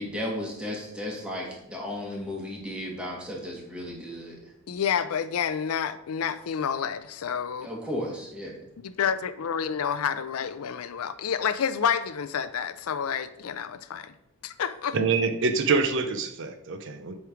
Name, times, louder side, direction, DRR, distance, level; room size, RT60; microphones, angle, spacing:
voice 1, 0.0-4.4 7.6-8.6, left 1 dB, 5° right, -2 dB, 1.3 m, -34 dB
voice 2, 4.7-7.7 8.8-14.1 14.4-15.0, left 7 dB, 75° left, 13 dB, 0.4 m, -29 dB
voice 3, 14.9-17.2, right 4 dB, 55° right, 8 dB, 0.5 m, -25 dB
7.8 x 3.2 x 4.9 m, 0.82 s
head